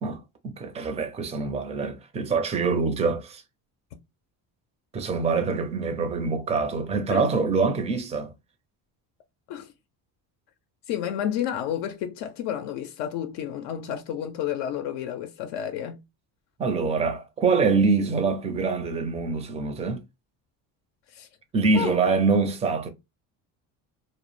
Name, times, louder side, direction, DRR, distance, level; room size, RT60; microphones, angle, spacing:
voice 1, 0.0-3.4 4.9-8.3 16.6-20.0 21.5-22.9, right 4 dB, 15° right, 0.4 m, -25 dB
voice 2, 10.9-16.0 21.1-21.3 21.7-22.0, left 9 dB, 75° left, 0.5 m, -31 dB
2.0 x 2.0 x 3.0 m
cardioid pair, 110°, 42 cm